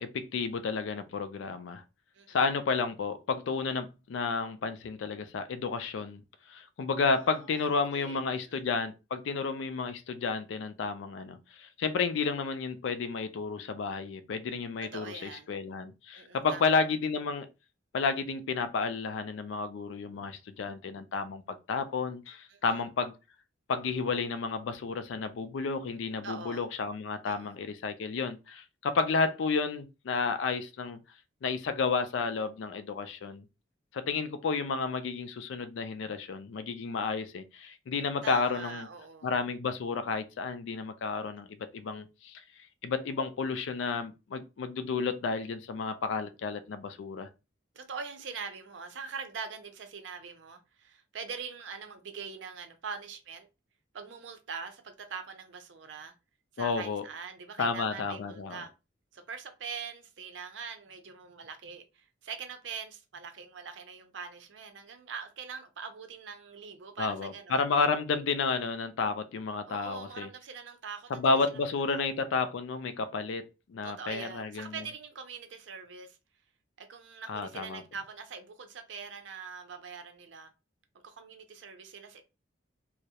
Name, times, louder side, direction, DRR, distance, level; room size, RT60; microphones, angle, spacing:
voice 1, 0.0-1.8 2.3-6.2 6.5-17.5 17.9-23.1 23.7-31.0 31.4-33.4 33.9-38.9 39.2-42.4 42.8-47.3 56.6-57.0 57.6-58.6 67.0-70.3 71.1-74.7 77.3-77.8, left 4 dB, 75° left, 0.4 m, -31 dB
voice 2, 7.2-8.6 14.9-15.5 16.1-16.8 22.5-22.8 26.2-26.6 27.2-27.5 38.2-39.3 47.7-53.5 53.9-56.1 56.5-58.7 59.1-67.6 69.7-71.6 71.9-72.0 73.8-76.2 76.8-80.5 80.9-82.2, right 5 dB, 65° right, 0.5 m, -43 dB
2.3 x 2.0 x 2.7 m
head